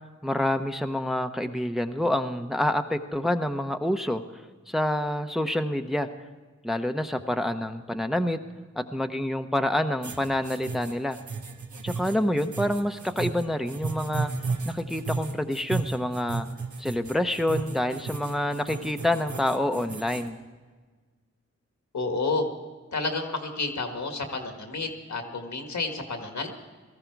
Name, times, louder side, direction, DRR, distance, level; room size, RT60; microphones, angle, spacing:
voice 1, 0.2-6.1 6.6-8.4 8.8-11.2 11.8-14.3 14.6-16.5 16.8-20.4, left 1 dB, ahead, 6 dB, 0.8 m, -27 dB
sound 1, 10.0-20.3, right 4 dB, 80° right, 1.3 m, -34 dB
voice 2, 21.9-22.5 22.9-26.5, left 3 dB, 80° left, 4 dB, 1.7 m, -30 dB
18.0 x 14.0 x 4.6 m, 1.4 s
cardioid pair, 50°, 29 cm